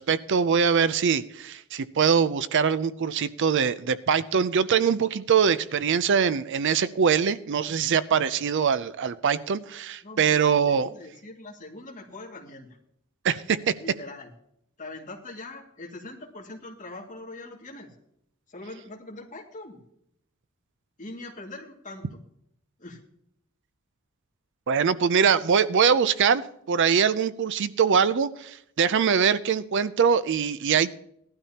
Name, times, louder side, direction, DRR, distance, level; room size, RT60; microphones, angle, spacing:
voice 1, 0.0-10.9 13.2-13.7 24.7-26.4 26.7-31.0, right 6 dB, 55° right, 16 dB, 0.5 m, -23 dB
voice 2, 10.0-12.8 13.8-14.3 14.8-17.9 18.5-19.8 21.0-22.2 22.8-23.0, left 2 dB, 35° left, 1 dB, 2.2 m, -42 dB
18.5 x 12.0 x 2.9 m, 0.74 s
head